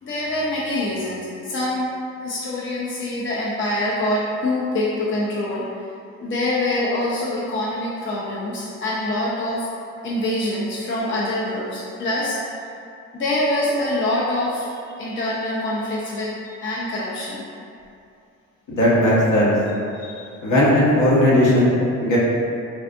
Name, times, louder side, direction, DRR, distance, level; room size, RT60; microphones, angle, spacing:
voice 1, 0.0-1.9 2.2-5.7 6.2-9.7 10.0-12.4 13.1-17.5 19.9-20.3, left 1 dB, 35° left, -6 dB, 0.6 m, -25 dB
voice 2, 18.7-19.5 20.4-22.2, left 1 dB, 60° left, -6 dB, 1.1 m, -17 dB
3.4 x 2.5 x 2.5 m, 2.6 s
hypercardioid pair, 60°, 36 cm